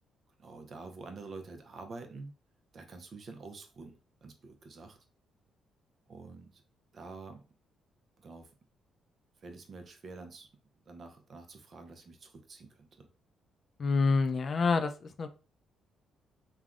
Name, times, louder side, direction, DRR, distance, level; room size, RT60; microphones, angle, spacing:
voice 1, 0.4-2.3 2.7-5.0 6.1-6.6 6.9-7.4 8.2-8.5 9.4-10.5 10.9-13.1, right 3 dB, 50° right, 6 dB, 0.6 m, -47 dB
voice 2, 13.8-15.3, left 4 dB, 45° left, 9 dB, 0.4 m, -27 dB
3.3 x 2.2 x 2.4 m, 0.34 s
cardioid pair, 90°, 0 cm